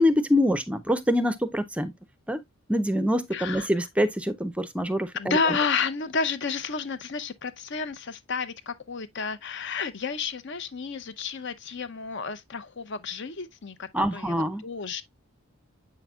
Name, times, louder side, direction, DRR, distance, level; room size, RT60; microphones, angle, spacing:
voice 1, 0.0-1.9 2.3-2.4 2.7-5.1 13.9-14.6, left 1 dB, 5° right, 0.5 m, -25 dB
voice 2, 3.3-3.7 5.1-15.0, left 5 dB, 55° left, 0.8 m, -31 dB
7.7 x 5.7 x 2.3 m
head